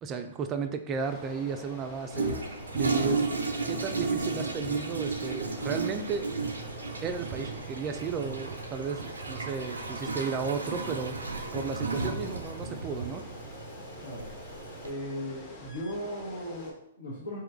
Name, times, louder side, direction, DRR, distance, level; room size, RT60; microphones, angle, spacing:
voice 1, 0.0-2.4 2.7-3.3 3.7-6.3 7.0-11.2 11.5-13.3, right 5 dB, 25° right, 7 dB, 0.3 m, -34 dB
sound 1, 1.0-16.7, left 1 dB, 35° left, 0.8 m, -46 dB
Toilet flush, 2.1-14.9, right 3 dB, 90° right, 0.4 m, -33 dB
voice 2, 14.0-14.3 14.8-17.4, equal, 85° left, -6 dB, 1.0 m, -37 dB
3.0 x 2.2 x 3.7 m, 0.72 s
hypercardioid pair, 120°, 0 cm